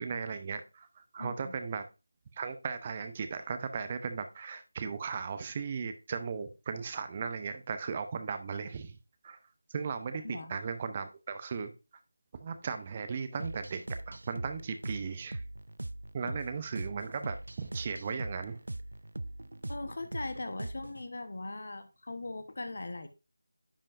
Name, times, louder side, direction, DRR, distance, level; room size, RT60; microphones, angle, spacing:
voice 1, 0.0-1.9 2.3-9.0 9.2-9.4 9.7-11.7 12.4-15.4 16.1-18.6, right 5 dB, 25° right, 0.7 m, -37 dB
voice 2, 1.2-1.5 10.2-10.5 19.7-23.1, left 2 dB, 55° left, 1.0 m, -40 dB
sound 1, 13.4-21.1, right 1 dB, 70° right, 0.4 m, -41 dB
10.0 x 5.4 x 2.5 m
figure-of-eight pair, 165°, 0 cm